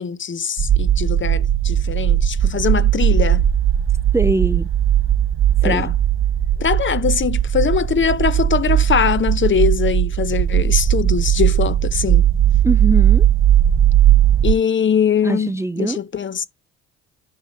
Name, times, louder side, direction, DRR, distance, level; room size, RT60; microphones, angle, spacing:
voice 1, 0.0-3.5 5.6-5.9 6.6-12.2 14.4-15.5 15.8-16.5, left 7 dB, 35° left, 0.9 m, -21 dB
sound 1, 0.6-14.5, right 10 dB, 40° right, 0.8 m, -17 dB
voice 2, 4.1-4.7 5.6-5.9 12.6-13.3 15.2-16.0, right 2 dB, 10° right, 0.4 m, -22 dB
10.5 x 3.5 x 5.4 m
supercardioid pair, 75°, 32 cm